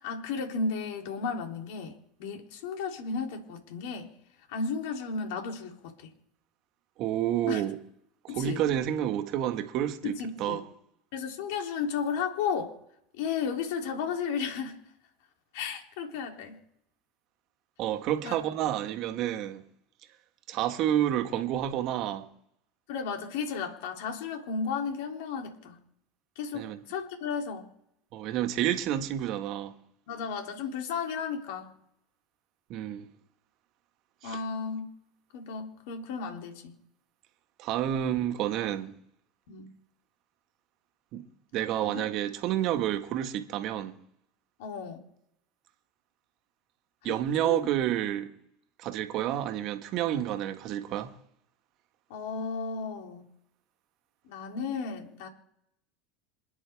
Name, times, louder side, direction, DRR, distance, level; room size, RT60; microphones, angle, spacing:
voice 1, 0.0-4.1 4.5-5.9 7.5-7.6 8.3-8.6 10.0-10.6 11.1-12.8 13.2-14.8 15.5-16.6 18.2-18.3 22.9-25.8 26.4-27.7 30.1-31.7 34.2-34.9 35.3-36.7 39.5-39.7 41.6-42.1 44.6-45.0 47.0-47.2 47.4-47.6 52.1-53.3 54.2-55.3, left 5 dB, 70° left, 3.2 m, -34 dB
voice 2, 7.0-7.8 8.2-10.6 17.8-19.6 20.5-22.3 26.5-26.8 28.1-29.7 32.7-33.1 34.2-34.4 37.6-39.0 41.1-41.2 41.5-44.0 47.0-48.3 48.8-51.1, right 11 dB, 55° right, 1.7 m, -29 dB
27.5 x 9.9 x 3.6 m
hypercardioid pair, 95°, 0 cm